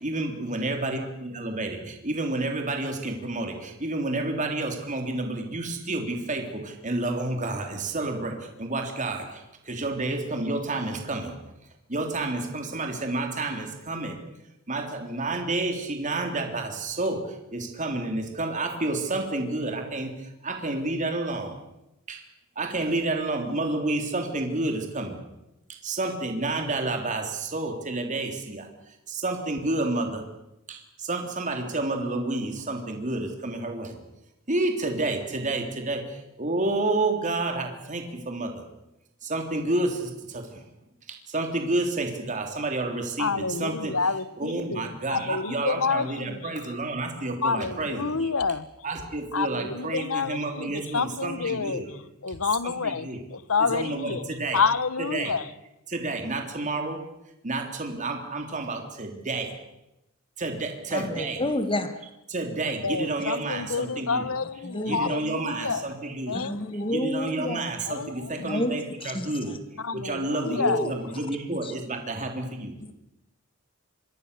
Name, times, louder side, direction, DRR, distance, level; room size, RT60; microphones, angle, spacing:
voice 1, 0.0-1.8 2.0-3.5 3.8-8.3 8.6-9.2 9.7-11.3 11.9-14.1 14.7-17.2 17.5-20.1 20.4-21.5 22.1-22.2 22.6-25.1 25.8-28.6 29.2-30.2 31.1-33.9 34.5-36.0 36.4-38.5 39.3-40.0 40.3-40.4 41.3-43.9 44.4-48.2 48.8-51.9 52.6-53.2 53.6-54.6 55.1-55.3 55.9-57.0 57.4-59.5 60.4-61.4 62.3-64.3 64.9-66.4 66.9-69.5 69.9-72.7, right 2 dB, 35° right, 3.3 m, -29 dB
voice 2, 43.2-46.6 47.4-48.7 49.3-51.8 52.2-55.5 62.8-66.0 66.3-66.9 67.9-68.6 69.8-70.9, left 5 dB, 90° left, 1.2 m, -29 dB
voice 3, 60.9-62.0 64.6-65.2 66.3-67.6 68.5-69.6 70.6-70.9 71.6-71.7 72.8-72.9, left 1 dB, 25° left, 1.7 m, -30 dB
26.5 x 24.0 x 6.9 m
head